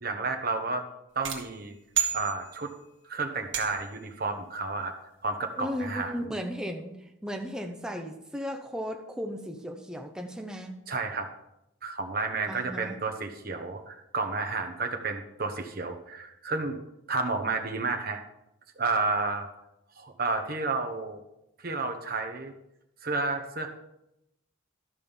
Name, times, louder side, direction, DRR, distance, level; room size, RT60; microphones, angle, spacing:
voice 1, 0.0-0.8 1.1-1.7 2.1-2.7 3.0-4.9 5.2-6.1 10.9-11.3 11.8-16.8 17.1-18.2 18.8-19.5 20.0-21.2 21.6-22.5 23.0-23.7, right 3 dB, 45° right, 4 dB, 1.1 m, -31 dB
sound 1, 1.2-2.9 3.5-4.1, right 10 dB, 65° right, 1.6 m, -32 dB
voice 2, 5.6-10.7 12.5-13.0, equal, 5° right, 2 dB, 0.8 m, -36 dB
12.5 x 5.3 x 5.5 m, 0.85 s
head